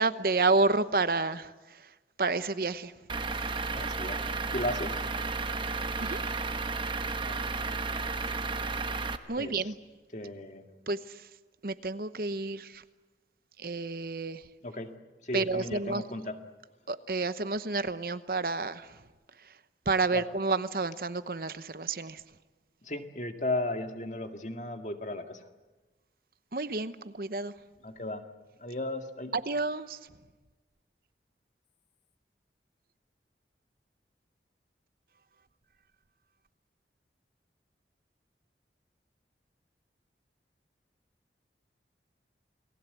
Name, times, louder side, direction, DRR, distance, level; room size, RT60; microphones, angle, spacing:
voice 1, 0.0-1.8 2.2-2.9 6.0-6.2 9.3-9.7 10.9-11.2 11.6-12.8 13.6-14.4 15.3-16.0 16.9-19.0 19.9-22.2 26.5-27.5 29.5-30.0, right 3 dB, 55° right, 12 dB, 0.9 m, -30 dB
Truck / Idling, 3.1-9.2, right 4 dB, 30° right, 1.1 m, -33 dB
voice 2, 3.7-5.0 7.2-7.4 9.4-9.6 10.1-10.7 14.6-14.9 15.2-16.4 20.1-20.2 22.8-25.5 27.8-28.2 28.6-29.4, left 1 dB, 45° left, 6 dB, 2.0 m, -35 dB
29.0 x 19.5 x 8.4 m, 1.2 s
head